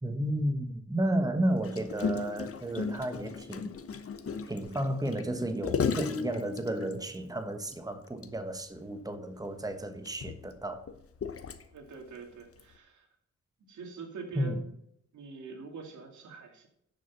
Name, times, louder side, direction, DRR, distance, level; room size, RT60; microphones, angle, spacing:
voice 1, 0.0-3.7 4.5-10.8 14.3-14.6, right 1 dB, 15° right, 1.3 m, -32 dB
Gurgling, 1.6-7.2 7.7-7.8 8.1-8.3 8.6-8.7 9.5-11.9 12.6-12.7, left 5 dB, 50° left, 1.1 m, -35 dB
voice 2, 11.7-13.1 13.7-14.7 15.1-16.7, right 4 dB, 85° right, 2.4 m, -44 dB
10.0 x 6.6 x 5.8 m
cardioid pair, 70°, 29 cm